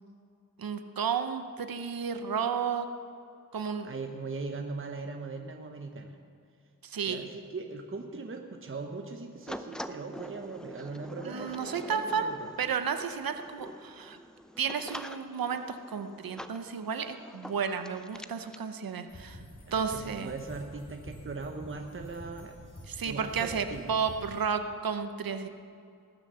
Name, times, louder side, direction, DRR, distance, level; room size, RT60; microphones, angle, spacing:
voice 1, 0.6-2.9 3.5-3.9 6.8-7.3 11.3-12.3 12.6-14.2 14.6-19.4 19.7-20.3 22.9-25.5, right 6 dB, 80° right, 8 dB, 0.9 m, -32 dB
voice 2, 3.5-6.2 7.0-12.5 19.7-22.6 23.0-23.9, right 4 dB, 35° right, 4 dB, 1.0 m, -40 dB
sound 1, 9.5-18.6, equal, ahead, 0.6 m, -45 dB
sound 2, 19.1-24.4, left 1 dB, 45° left, 3.8 m, -48 dB
19.5 x 7.1 x 6.9 m, 2.3 s
cardioid pair, 60°, 35 cm